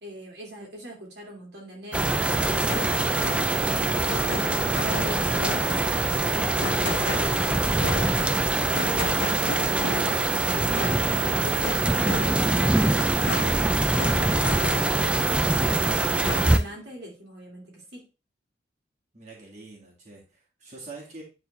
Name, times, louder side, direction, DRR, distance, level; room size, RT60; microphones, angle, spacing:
voice 1, 0.0-3.0 3.6-8.2 8.6-12.0 12.4-18.0, right 1 dB, 60° right, -1 dB, 2.2 m, -41 dB
sound 1, 1.9-16.6, right 2 dB, 5° right, 0.4 m, -24 dB
sound 2, 2.7-15.2 15.6-16.8, left 3 dB, 70° left, 1.0 m, -36 dB
voice 2, 19.1-21.2, right 3 dB, 35° right, -4 dB, 2.1 m, -44 dB
9.7 x 4.1 x 3.3 m, 0.31 s
head